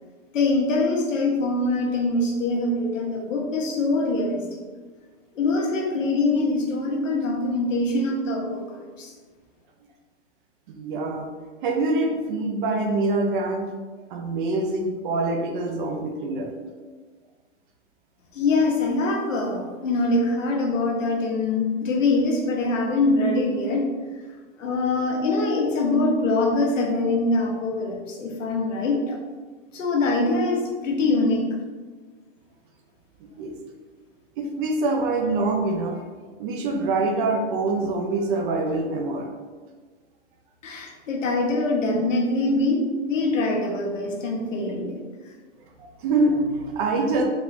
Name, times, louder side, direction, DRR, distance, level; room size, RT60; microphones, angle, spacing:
voice 1, 0.3-4.6 5.3-9.1 18.3-23.9 24.6-29.2 29.7-31.4 40.6-45.0, left 2 dB, 90° left, 0 dB, 1.0 m, -23 dB
voice 2, 10.7-11.3 11.6-13.7 14.1-16.5 33.4-33.5 34.4-36.0 36.4-39.3 44.7-44.8 45.8-47.2, right 2 dB, 45° right, 2 dB, 0.6 m, -25 dB
3.9 x 2.9 x 2.5 m, 1.4 s
hypercardioid pair, 140°, 37 cm